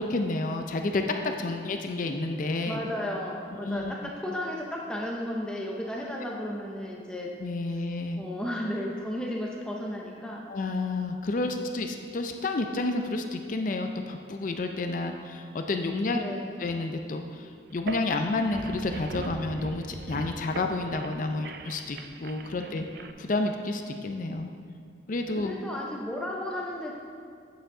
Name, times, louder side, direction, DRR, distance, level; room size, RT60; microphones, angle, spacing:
voice 1, 0.0-2.8 3.6-3.9 7.4-8.2 10.5-16.2 16.6-22.9 23.2-24.5 25.1-25.5, left 2 dB, 45° left, 5 dB, 0.4 m, -30 dB
voice 2, 2.7-7.3 8.2-10.5 16.1-16.6 22.4-22.9 25.3-26.9, left 1 dB, 5° left, -2 dB, 0.6 m, -34 dB
sound 1, 17.7-23.1, right 3 dB, 60° right, 0.4 m, -40 dB
8.9 x 6.9 x 3.8 m, 2.2 s
head